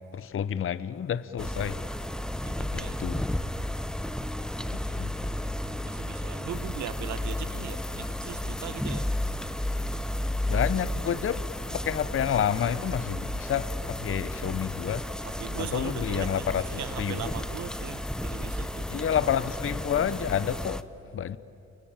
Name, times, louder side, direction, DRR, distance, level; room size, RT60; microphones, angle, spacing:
voice 1, 0.1-1.8 2.7-3.2 4.7-5.1 10.5-15.1 15.6-17.3 18.9-20.8 21.1-21.4, left 9 dB, 45° left, 0.8 m, -29 dB
sound 1, 1.4-20.8, left 1 dB, ahead, 0.8 m, -33 dB
voice 2, 2.4-3.0 4.4-9.1 15.2-18.9, right 10 dB, 70° right, 1.2 m, -40 dB
sound 2, 6.5-20.7, left 9 dB, 85° left, 3.4 m, -52 dB
29.0 x 23.0 x 8.9 m
cardioid pair, 90°, 30 cm